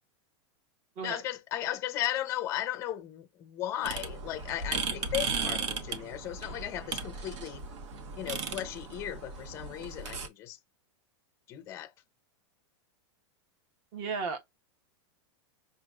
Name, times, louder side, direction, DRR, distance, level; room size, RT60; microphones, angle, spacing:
voice 1, 1.0-7.6 8.2-10.6 11.5-11.9, left 12 dB, 20° left, 0.5 m, -36 dB
sound 1, 3.8-10.3, right 5 dB, 80° right, 1.2 m, -36 dB
voice 2, 13.9-14.4, right 4 dB, 35° right, 1.1 m, -34 dB
5.9 x 2.4 x 2.3 m
supercardioid pair, 170°, 15 cm